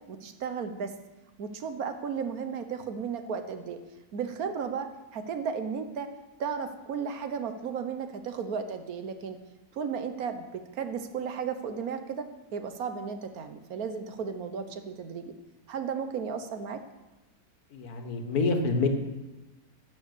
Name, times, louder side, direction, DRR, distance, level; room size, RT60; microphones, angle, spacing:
voice 1, 0.1-0.9 1.4-3.8 4.1-4.9 5.1-6.1 6.4-9.4 9.7-12.2 12.5-15.3 15.7-16.8, right 6 dB, 75° right, 8 dB, 1.4 m, -34 dB
voice 2, 17.7-18.9, left 3 dB, 80° left, 6 dB, 1.8 m, -27 dB
11.0 x 7.4 x 6.7 m, 1.1 s
omnidirectional pair, 1.6 m